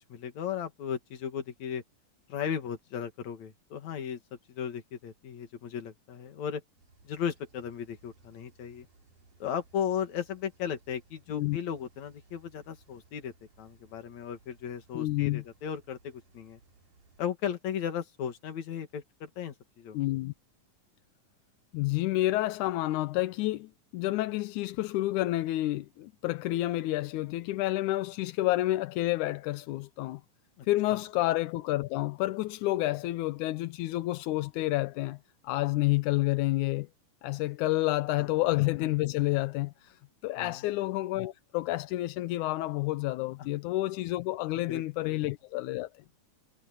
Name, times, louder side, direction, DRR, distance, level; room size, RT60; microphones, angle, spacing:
voice 1, 0.1-1.8 2.3-4.2 4.5-6.6 7.0-8.9 9.4-13.3 13.6-16.6 17.2-20.0 30.6-30.7 30.9-31.0 38.2-38.3 40.4-40.6 44.5-45.2, left 8 dB, 65° left, 3.1 m, -36 dB
sound 1, 6.8-17.3, right 3 dB, 75° right, 6.8 m, -62 dB
voice 2, 14.9-15.4 19.9-20.3 21.7-30.2 30.7-35.2 35.4-36.9 37.2-40.0 40.2-45.9, left 17 dB, 80° left, 2.1 m, -29 dB
omnidirectional pair, 3.7 m